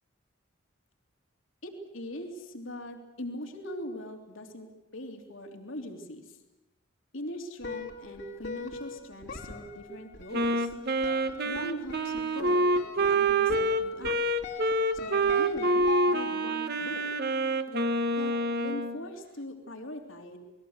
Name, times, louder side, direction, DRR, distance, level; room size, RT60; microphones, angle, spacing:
voice 1, 1.6-6.4 7.1-10.7 11.4-12.6 13.0-14.2 14.9-17.1 18.1-20.4, left 1 dB, 80° left, 4 dB, 3.4 m, -41 dB
sound 1, 7.6-16.6, left 5 dB, 60° left, 2.6 m, -42 dB
Wind instrument woodwind instrument, 10.3-19.0, right 2 dB, 55° right, 1.6 m, -27 dB
29.0 x 20.5 x 8.1 m, 0.95 s
head